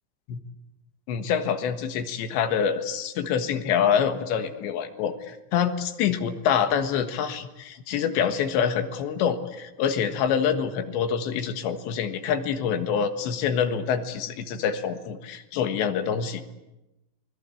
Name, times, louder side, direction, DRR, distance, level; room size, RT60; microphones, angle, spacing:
voice 1, 1.1-16.4, left 7 dB, 85° left, 7 dB, 3.8 m, -26 dB
27.5 x 21.0 x 8.5 m, 0.96 s
omnidirectional pair, 5.0 m